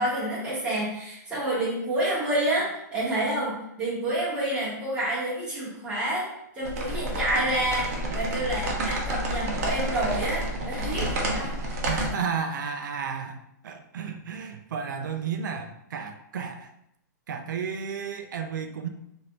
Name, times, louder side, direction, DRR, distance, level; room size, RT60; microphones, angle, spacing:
voice 1, 0.0-6.3 6.6-11.5, right 1 dB, 10° right, -8 dB, 1.1 m, -28 dB
sound 1, 6.6-12.1, right 1 dB, 50° right, 0.7 m, -29 dB
voice 2, 11.8-13.4 13.6-16.7 17.3-18.9, right 6 dB, 85° right, 5 dB, 0.4 m, -32 dB
3.1 x 2.6 x 2.9 m, 0.77 s
hypercardioid pair, 165°, 10 cm